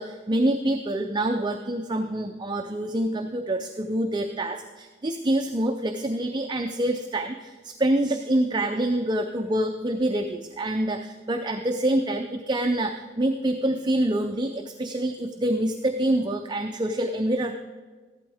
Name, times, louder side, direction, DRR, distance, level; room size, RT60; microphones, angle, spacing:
voice 1, 0.0-17.5, right 1 dB, 25° right, 5 dB, 0.5 m, -26 dB
14.5 x 12.0 x 3.5 m, 1.4 s
head